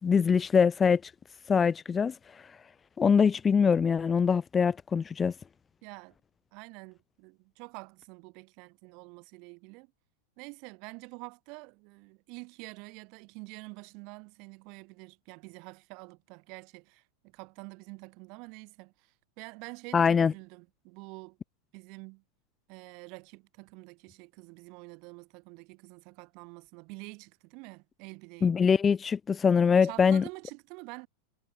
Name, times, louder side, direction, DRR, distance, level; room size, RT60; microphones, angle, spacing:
voice 1, 0.0-1.0 1.5-2.1 3.0-5.3 19.9-20.3 28.4-30.2, left 6 dB, 20° left, 0.3 m, -23 dB
voice 2, 5.8-6.1 6.5-9.9 10.4-21.4 21.7-22.2 22.7-28.6 29.8-31.1, right 30 dB, 45° right, 2.9 m, -47 dB
figure-of-eight pair, 90°, 0 cm